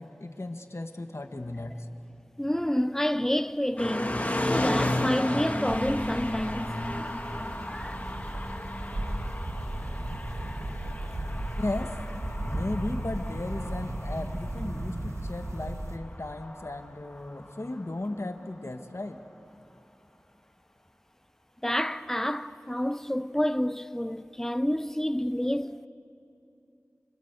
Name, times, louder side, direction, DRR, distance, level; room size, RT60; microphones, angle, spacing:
voice 1, 0.0-1.7 11.6-11.9 12.4-19.2, left 2 dB, 65° left, 1.7 m, -35 dB
voice 2, 2.4-7.1 7.7-8.0 21.6-25.9, equal, 10° left, 0.7 m, -29 dB
sound 1, 3.8-17.8, left 1 dB, 30° left, 2.3 m, -34 dB
sound 2, 5.6-16.0, right 1 dB, 90° right, 1.7 m, -35 dB
27.0 x 26.0 x 8.3 m
wide cardioid pair, 45°, 5 cm